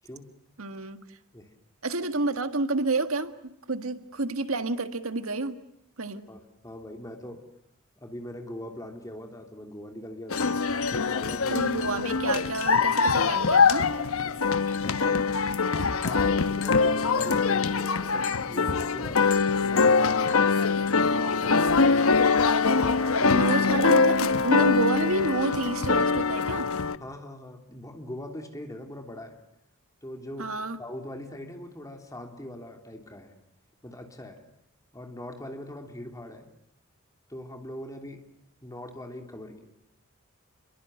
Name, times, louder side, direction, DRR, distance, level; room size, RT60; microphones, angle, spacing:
voice 1, 0.6-1.0 1.8-5.6 6.0-6.3 11.5-13.9 23.3-26.7 30.4-30.8, right 3 dB, 85° right, 1.8 m, -29 dB
voice 2, 6.3-7.4 8.0-10.5 10.9-11.6 14.8-15.3 16.0-19.3 19.6-22.3 22.8-23.6 27.0-29.4 30.0-30.5 30.8-33.3 33.8-34.4 34.9-36.5 37.3-38.2 38.6-39.7, left 1 dB, 15° left, 3.2 m, -41 dB
sound 1, 10.3-27.0, left 4 dB, 80° left, 1.0 m, -23 dB
29.0 x 22.5 x 7.8 m
head